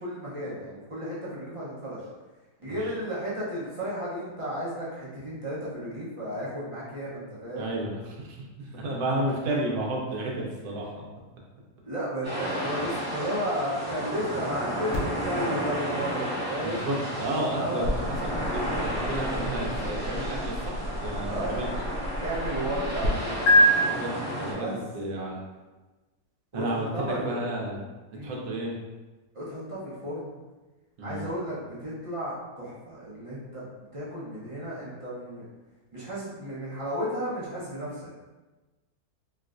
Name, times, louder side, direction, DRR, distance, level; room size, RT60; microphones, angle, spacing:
voice 1, 0.0-2.0 2.6-7.7 10.8-11.0 11.8-16.9 17.6-17.9 21.3-21.7 22.2-23.7 24.6-24.8 26.5-27.4 28.1-28.4 29.3-30.3 31.0-33.7 33.9-35.4 35.9-38.1, equal, 35° right, -8 dB, 0.5 m, -33 dB
voice 2, 7.6-8.2 8.7-11.0 16.6-21.7 23.8-24.7 24.9-25.4 26.5-27.8 28.2-28.7 31.0-31.3, right 1 dB, 75° right, -2 dB, 1.2 m, -32 dB
sound 1, 12.2-24.5, equal, 15° right, 1.1 m, -32 dB
sound 2, 14.9-23.1 23.5-23.6, left 2 dB, 65° left, 0.9 m, -30 dB
3.2 x 3.0 x 2.4 m, 1.2 s
omnidirectional pair, 1.7 m